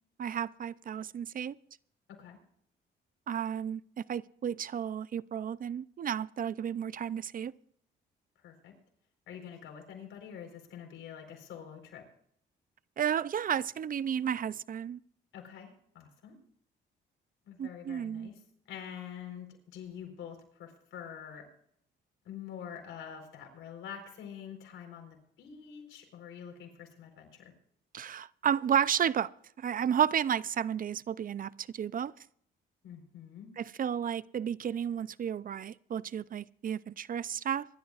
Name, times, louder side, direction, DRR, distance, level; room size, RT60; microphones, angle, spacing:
voice 1, 0.2-1.6 3.3-7.5 13.0-15.0 17.6-18.3 27.9-29.3 29.6-32.1 33.6-37.7, right 8 dB, 45° right, 0.5 m, -32 dB
voice 2, 9.3-12.0 15.3-16.4 17.4-18.4 18.7-21.5 22.2-27.5 32.8-33.5, left 8 dB, 80° left, 4.2 m, -46 dB
25.0 x 12.0 x 2.4 m
cardioid pair, 90°, 20 cm